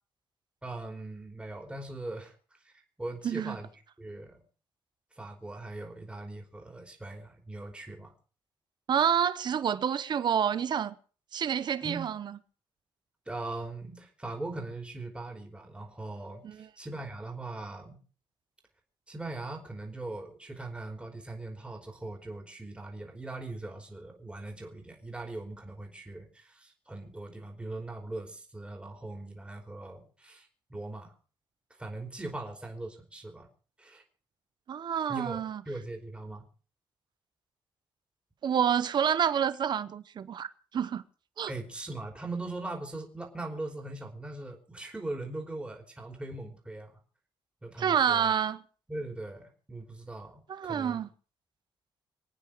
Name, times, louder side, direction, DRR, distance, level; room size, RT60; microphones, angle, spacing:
voice 1, 0.6-3.7 4.0-4.4 5.1-8.1 11.8-12.1 13.2-18.0 19.1-31.1 31.8-33.5 33.8-34.0 35.1-36.5 41.5-47.0 47.6-48.3 48.9-51.0, right 2 dB, 10° right, 3.3 m, -40 dB
voice 2, 3.2-3.6 8.9-10.9 11.3-12.3 16.4-16.6 34.7-35.6 38.4-40.5 40.7-41.0 41.4-41.5 47.8-48.6 50.5-51.1, right 8 dB, 55° right, 0.9 m, -28 dB
26.0 x 9.2 x 5.0 m
cardioid pair, 115°, 9 cm